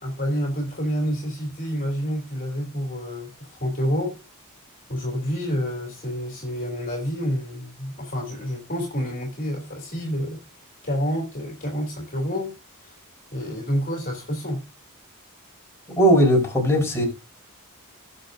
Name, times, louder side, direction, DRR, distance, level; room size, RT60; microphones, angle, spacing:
voice 1, 0.0-4.2 4.9-10.4 10.8-13.0 13.3-14.7, equal, 40° left, 3.0 m, -28 dB
voice 2, 16.0-17.0, equal, 10° left, 4.4 m, -18 dB
17.0 x 6.8 x 2.7 m
head